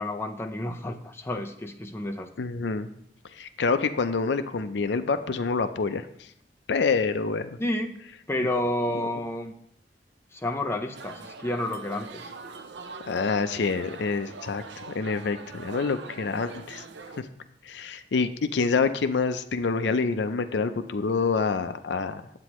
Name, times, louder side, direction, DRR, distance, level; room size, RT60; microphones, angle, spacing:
voice 1, 0.0-2.3 7.6-8.0 8.3-9.5 10.3-12.3, left 1 dB, 15° left, 3 dB, 0.5 m, -30 dB
voice 2, 2.4-2.9 3.3-6.3 6.7-7.6 8.4-8.5 8.9-9.1 13.1-16.8 17.2-17.3 17.6-22.2, left 4 dB, 75° left, 10 dB, 0.5 m, -27 dB
sound 1, 10.9-17.2, right 4 dB, 80° right, 0.6 m, -43 dB
9.6 x 8.3 x 3.0 m, 0.71 s
head